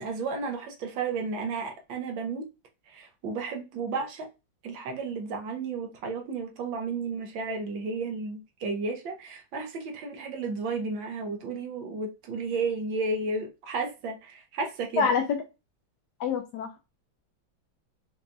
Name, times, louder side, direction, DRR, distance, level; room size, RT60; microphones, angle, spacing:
voice 1, 0.0-2.5 2.9-4.3 4.6-15.1, right 4 dB, 75° right, 1.6 m, -33 dB
voice 2, 15.0-15.4 16.2-16.8, left 5 dB, 75° left, 1.0 m, -26 dB
5.3 x 2.6 x 2.2 m
omnidirectional pair, 2.2 m